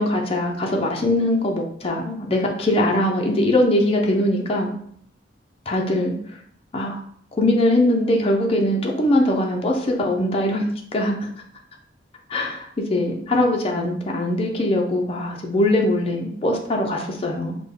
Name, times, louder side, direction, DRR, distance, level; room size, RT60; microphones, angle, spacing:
voice 1, 0.0-4.7 5.7-6.1 6.7-7.0 7.4-10.7 10.9-11.3 12.3-17.6, left 1 dB, 30° left, 1 dB, 0.5 m, -21 dB
3.3 x 2.1 x 3.6 m, 0.62 s
head